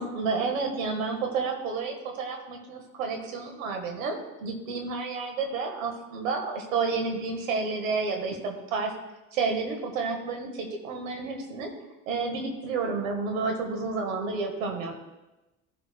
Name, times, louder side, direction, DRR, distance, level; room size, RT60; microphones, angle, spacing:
voice 1, 0.0-8.9 9.3-11.7 12.1-15.0, right 4 dB, 80° right, 3 dB, 1.6 m, -30 dB
14.5 x 6.6 x 2.3 m, 1.0 s
hypercardioid pair, 60°, 39 cm